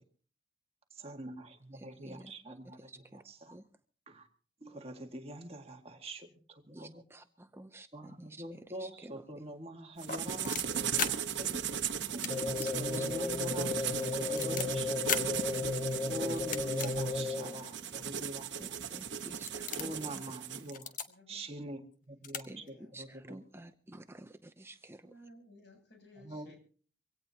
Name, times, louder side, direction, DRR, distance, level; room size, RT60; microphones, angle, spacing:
voice 1, 0.9-3.6 4.1-4.3 4.6-7.0 7.9-11.8 12.1-15.0 16.0-18.8 19.8-20.9 21.3-23.4 26.2-26.5, right 1 dB, 30° right, 4 dB, 1.9 m, -44 dB
voice 2, 1.7-3.2 3.5-3.6 6.7-9.2 13.0-13.4 18.6-20.2 22.4-25.1, right 1 dB, 15° right, 8 dB, 0.6 m, -51 dB
sound 1, 10.0-11.1 12.0-12.3 12.6-12.7 13.1-13.2 13.8-14.7 15.1-15.2 16.4-16.9 17.5-17.6 18.5-18.6 19.0-19.2 19.5-20.0 20.7-21.1 21.9-22.0 22.2-22.4 22.7-22.8, left 7 dB, 45° left, 1.3 m, -36 dB
sound 2, 10.0-20.7, right 8 dB, 65° right, 1.1 m, -37 dB
sound 3, 12.3-17.7, left 4 dB, 25° left, 0.8 m, -35 dB
voice 3, 16.6-17.7 19.2-19.8 21.1-21.4 22.3-23.0 25.0-26.6, left 2 dB, 60° left, 3 dB, 8.0 m, -59 dB
24.0 x 17.5 x 2.9 m, 0.41 s
head